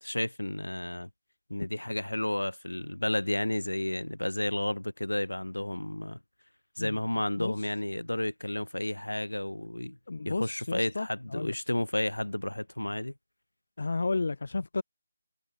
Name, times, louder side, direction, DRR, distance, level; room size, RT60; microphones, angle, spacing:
voice 1, 0.0-1.1 1.5-6.2 6.8-10.0 10.2-13.1, left 1 dB, 80° left, 1.3 m, -32 dB
voice 2, 7.4-7.7 10.1-11.5 13.8-14.8, left 3 dB, 55° left, 0.7 m, -32 dB
figure-of-eight pair, 155°, 0 cm